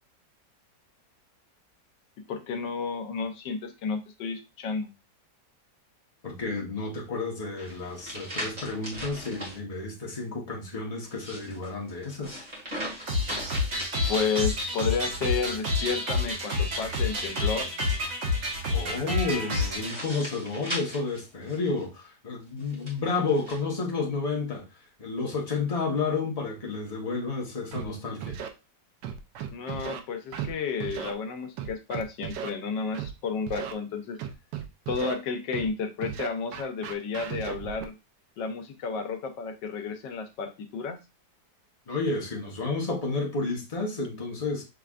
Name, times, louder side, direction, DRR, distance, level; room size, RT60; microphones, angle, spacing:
voice 1, 2.3-4.9 14.1-17.7 29.5-34.2 34.9-37.9 38.4-41.0, left 5 dB, 85° left, 1.4 m, -32 dB
voice 2, 6.2-12.4 18.7-24.6 25.0-28.4 41.9-44.6, left 3 dB, 25° left, 1.0 m, -31 dB
sound 1, 7.6-9.6 11.0-14.9 16.3-17.6 19.4-21.9 22.6-23.6, equal, 25° right, 1.8 m, -39 dB
sound 2, 13.1-19.9, left 2 dB, 45° right, 1.4 m, -28 dB
Scratching (performance technique), 27.7-27.8 28.2-28.5 29.0-30.0 30.3-30.5 30.8-31.1 31.6-32.5 32.9-33.1 33.5-33.7 34.2-35.1 35.5-35.7 36.0-37.9, right 9 dB, 90° right, 1.3 m, -35 dB
6.4 x 3.3 x 2.4 m
omnidirectional pair, 1.9 m